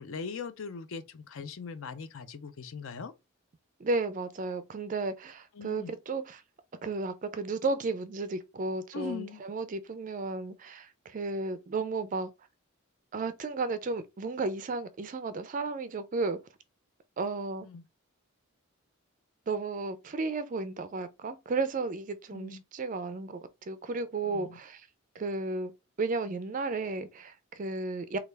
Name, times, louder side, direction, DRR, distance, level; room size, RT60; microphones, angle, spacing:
voice 1, 0.0-3.1 5.6-6.0 8.9-9.4 17.6-17.8 22.3-22.6 24.2-24.6, left 5 dB, 65° left, 0.4 m, -40 dB
voice 2, 3.8-6.4 6.8-12.3 13.1-16.4 17.2-17.7 19.5-24.8 25.2-25.7 26.0-28.2, right 3 dB, 35° right, 0.3 m, -33 dB
3.2 x 2.3 x 3.3 m
head